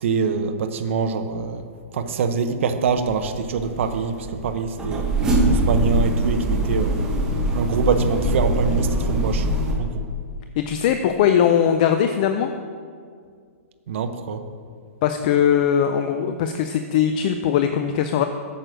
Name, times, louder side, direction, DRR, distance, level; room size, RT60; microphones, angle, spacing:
voice 1, 0.0-1.6 1.9-5.1 5.5-7.1 7.5-9.5 9.8-10.1 13.9-14.4, right 5 dB, 55° right, 8 dB, 0.7 m, -24 dB
sound 1, 2.9-9.7, right 1 dB, 10° right, 0.9 m, -23 dB
voice 2, 10.6-12.5 15.0-18.3, left 9 dB, 30° left, 7 dB, 0.4 m, -20 dB
9.0 x 6.5 x 6.2 m, 2.1 s
hypercardioid pair, 165°, 8 cm